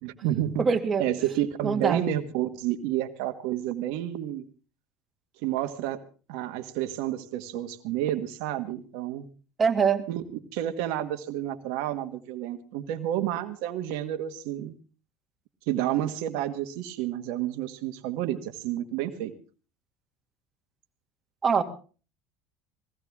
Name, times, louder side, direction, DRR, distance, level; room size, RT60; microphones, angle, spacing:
voice 1, 0.0-0.6 1.0-4.4 5.4-6.0 6.3-9.3 10.1-10.2 10.5-14.7 15.7-19.3, right 12 dB, 70° right, 6 dB, 1.5 m, -30 dB
voice 2, 0.6-1.0 1.6-2.0 9.6-10.0 21.4-21.6, right 6 dB, 30° right, 6 dB, 2.4 m, -23 dB
20.5 x 15.5 x 3.6 m, 0.37 s
supercardioid pair, 95°, 0 cm